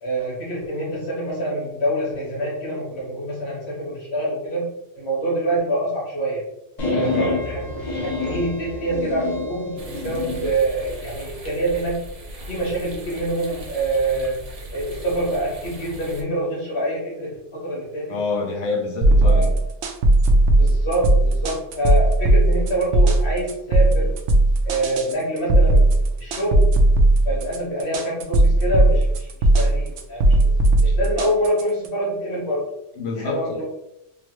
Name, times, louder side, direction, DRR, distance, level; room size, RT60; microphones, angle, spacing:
voice 1, 0.0-4.7 5.0-6.4 6.9-7.6 8.2-12.0 12.5-14.4 14.7-18.2 19.2-19.5 20.6-24.1 24.6-25.9 26.2-26.7 27.2-29.3 29.5-30.5 30.8-32.7 33.1-33.6, right 1 dB, 60° left, -5 dB, 1.6 m, -26 dB
sound 1, 6.8-10.5, left 2 dB, 45° left, 0.7 m, -27 dB
voice 2, 6.9-7.3 18.1-19.5 33.0-33.6, left 3 dB, 80° left, -1 dB, 1.1 m, -27 dB
sound 2, 9.8-16.2, equal, 40° right, 0.6 m, -38 dB
sound 3, 19.0-31.9, right 1 dB, 70° right, 0.8 m, -17 dB
3.7 x 2.2 x 3.0 m, 0.83 s
omnidirectional pair, 1.2 m